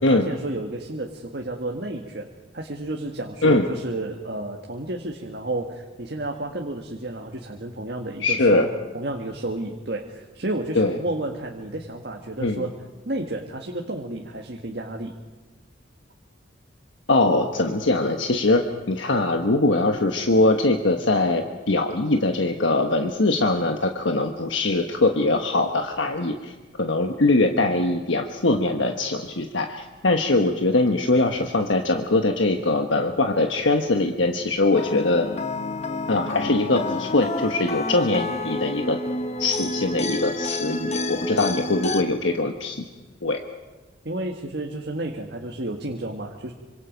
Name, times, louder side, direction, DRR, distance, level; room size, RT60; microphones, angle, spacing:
voice 1, 0.0-2.3 2.5-8.7 8.9-12.7 13.0-15.1 44.0-46.5, right 2 dB, 55° right, 1 dB, 1.7 m, -31 dB
voice 2, 8.2-8.7 10.7-11.0 12.4-12.6 17.1-35.3 36.1-39.0 39.4-42.8 43.2-43.4, left 2 dB, 75° left, 4 dB, 1.3 m, -22 dB
sound 1, 34.7-42.0, left 2 dB, 35° left, 1.1 m, -29 dB
26.5 x 25.5 x 5.3 m, 1.3 s
head